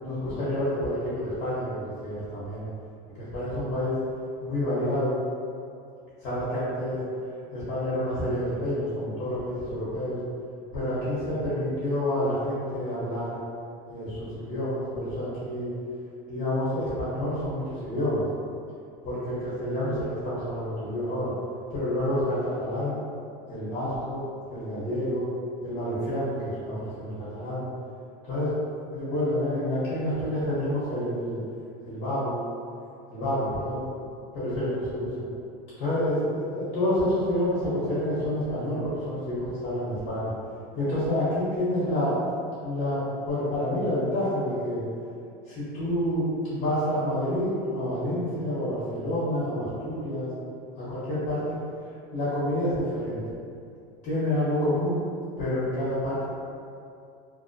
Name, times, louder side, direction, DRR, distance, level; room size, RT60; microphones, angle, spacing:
voice 1, 0.0-2.7 3.2-4.0 4.4-5.1 6.2-7.0 7.5-10.2 10.7-13.4 13.9-15.7 16.3-18.2 19.0-21.3 21.7-23.0 23.5-24.2 24.5-25.3 25.6-27.6 28.2-28.5 28.9-31.4 31.8-32.3 33.1-33.8 34.3-35.2 35.8-40.3 40.7-42.2 42.6-44.8 45.5-50.3 50.8-51.6 52.1-53.2 54.0-55.0 55.4-56.2, left 1 dB, 45° left, -11 dB, 0.8 m, -28 dB
2.5 x 2.0 x 2.5 m, 2.4 s
supercardioid pair, 145°, 20 cm